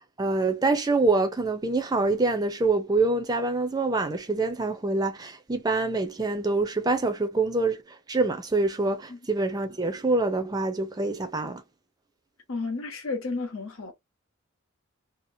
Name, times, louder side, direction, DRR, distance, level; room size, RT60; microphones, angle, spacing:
voice 1, 0.2-7.8 8.1-11.6, right 3 dB, 20° right, 0.4 m, -25 dB
voice 2, 12.5-13.9, left 3 dB, 80° left, 1.0 m, -32 dB
2.8 x 2.0 x 2.6 m
head